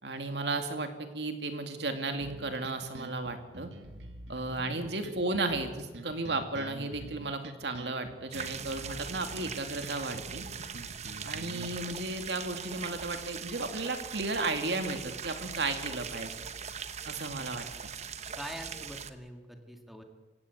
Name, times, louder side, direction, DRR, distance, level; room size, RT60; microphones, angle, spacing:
voice 1, 0.0-3.7 4.3-10.5 11.2-16.4 17.0-17.9, right 2 dB, 70° right, 6 dB, 2.4 m, -34 dB
sound 1, 2.2-11.8, right 1 dB, 85° right, 2.1 m, -46 dB
sound 2, 8.3-19.1, right 7 dB, 40° right, 1.0 m, -41 dB
voice 2, 18.4-20.0, equal, ahead, 4 dB, 2.1 m, -44 dB
27.0 x 16.5 x 8.1 m, 1.3 s
head